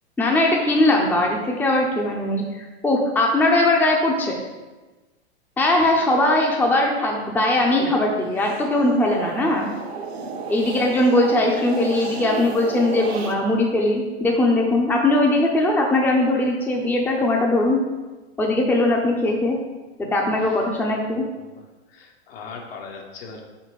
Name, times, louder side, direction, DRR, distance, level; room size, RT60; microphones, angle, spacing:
voice 1, 0.2-4.4 5.6-9.7 10.5-17.8 18.4-19.6 20.0-21.2, left 1 dB, 5° left, 0 dB, 0.6 m, -20 dB
voice 2, 7.6-7.9 10.6-10.7 20.4-20.7 21.3-23.4, left 5 dB, 65° left, 0 dB, 1.4 m, -40 dB
sound 1, 8.1-13.3, right 4 dB, 70° right, 1.0 m, -33 dB
4.8 x 4.3 x 4.8 m, 1.2 s
hypercardioid pair, 110°, 33 cm